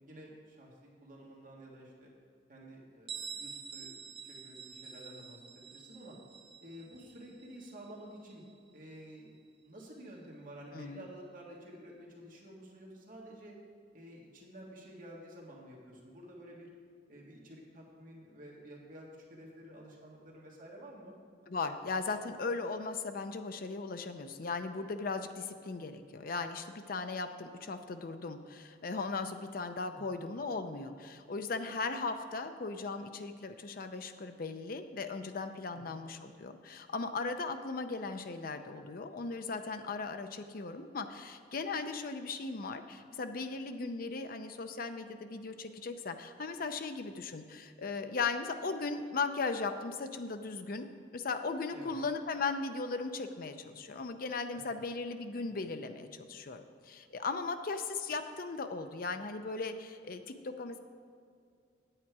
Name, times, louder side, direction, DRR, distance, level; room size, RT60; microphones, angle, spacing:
voice 1, 0.1-2.1 2.5-6.2 6.6-8.4 8.7-13.6 13.9-16.7 17.1-21.2 29.9-30.3 35.7-36.1 51.7-52.0 54.5-54.8 55.3-55.6, right 1 dB, 50° right, -2 dB, 1.8 m, -51 dB
Bell, 3.1-8.6, right 6 dB, 30° right, 0.6 m, -47 dB
voice 2, 21.5-60.8, left 4 dB, 50° left, 8 dB, 0.6 m, -37 dB
8.8 x 8.5 x 4.7 m, 2.3 s
head